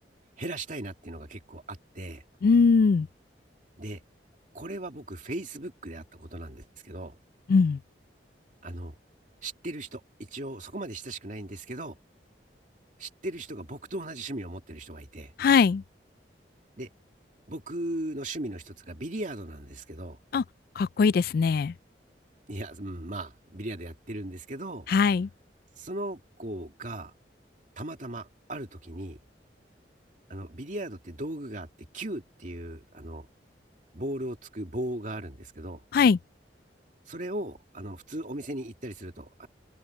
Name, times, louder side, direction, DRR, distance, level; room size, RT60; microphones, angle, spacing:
voice 1, 0.4-2.2 3.8-4.0 4.5-7.2 8.6-8.9 9.4-10.0 10.3-12.0 13.0-15.3 16.8-16.9 17.5-20.2 22.5-24.9 25.8-27.1 27.8-29.2 30.3-31.7 31.9-33.3 33.9-35.8 37.1-39.5, right 1 dB, 45° right, 2.6 m, -37 dB
voice 2, 2.4-3.1 7.5-7.8 15.4-15.8 20.3-20.4 20.8-21.7 24.9-25.3 35.9-36.2, left 5 dB, 55° left, 0.3 m, -21 dB
open air
head